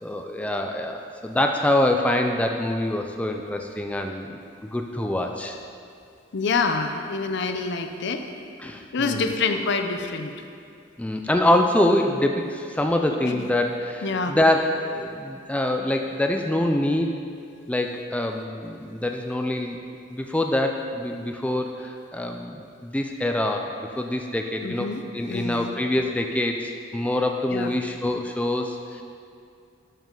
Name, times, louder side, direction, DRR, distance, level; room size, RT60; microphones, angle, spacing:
voice 1, 0.0-5.6 8.6-9.3 11.0-17.1 17.7-19.8 20.1-24.9 25.1-29.0, left 1 dB, 5° left, 3 dB, 0.3 m, -25 dB
voice 2, 6.3-8.2 8.9-10.3 13.2-13.5 14.0-14.4 24.6-25.0 25.3-25.7 27.5-27.7, left 4 dB, 60° left, 6 dB, 0.5 m, -26 dB
12.0 x 5.2 x 3.8 m, 2.4 s
head